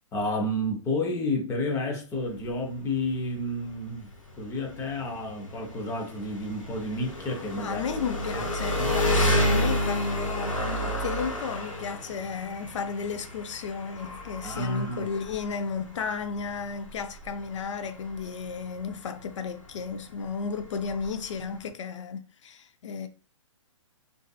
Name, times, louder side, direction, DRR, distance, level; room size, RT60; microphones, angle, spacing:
voice 1, 0.1-4.1 4.4-7.8 8.3-8.5 8.7-9.0 14.4-15.1, left 1 dB, 15° left, 0.6 m, -30 dB
Engine, 2.1-21.7, equal, 90° left, 0.7 m, -31 dB
voice 2, 7.6-23.1, left 6 dB, 70° left, 0.4 m, -34 dB
2.5 x 2.5 x 2.2 m
hypercardioid pair, 125°, 17 cm